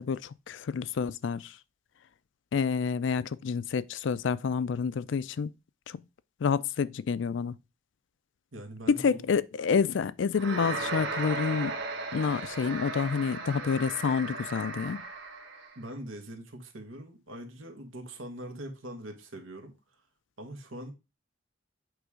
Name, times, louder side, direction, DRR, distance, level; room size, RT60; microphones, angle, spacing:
voice 1, 0.0-1.6 2.5-5.5 5.9-6.0 6.4-7.5 8.9-11.8 12.1-15.0, left 6 dB, 65° left, 0.4 m, -28 dB
voice 2, 8.5-9.2 15.7-19.7 20.4-20.9, right 1 dB, 85° right, 1.7 m, -42 dB
sound 1, 10.3-15.7, right 3 dB, 65° right, 1.8 m, -36 dB
8.1 x 3.4 x 4.9 m
head